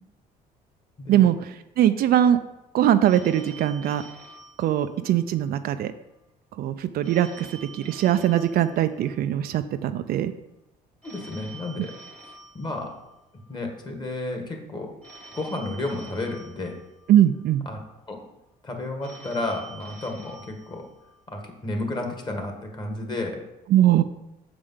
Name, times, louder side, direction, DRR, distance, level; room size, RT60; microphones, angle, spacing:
voice 1, 1.1-2.4 2.7-4.0 4.6-5.9 6.6-10.3 17.1-17.7 23.7-24.0, right 11 dB, 65° right, 10 dB, 0.5 m, -21 dB
Telephone, 3.0-5.5 7.0-9.5 11.0-13.5 15.0-17.5 19.0-21.5, right 3 dB, 5° left, 1.3 m, -47 dB
voice 2, 11.0-11.9 12.5-13.0 13.5-14.9 15.3-16.8 17.7-17.8 18.1-18.2 18.6-20.8 21.3-23.4, left 2 dB, 25° left, 3 dB, 1.7 m, -32 dB
6.9 x 5.0 x 5.6 m, 0.94 s
cardioid pair, 110°, 17 cm